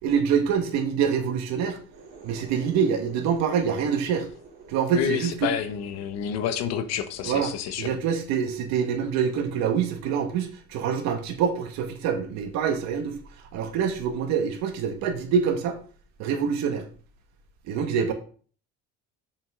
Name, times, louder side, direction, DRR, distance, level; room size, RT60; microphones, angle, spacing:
voice 1, 0.0-1.8 2.2-4.3 4.7-5.5 7.2-7.5 7.8-13.2 13.5-15.8 16.2-16.8 17.7-18.1, right 7 dB, 65° right, 2.0 m, -25 dB
sound 1, 1.8-9.3, right 4 dB, 35° right, 3.6 m, -49 dB
voice 2, 4.9-8.0, left 9 dB, 60° left, 1.2 m, -29 dB
7.8 x 7.4 x 3.9 m
cardioid pair, 170°, 29 cm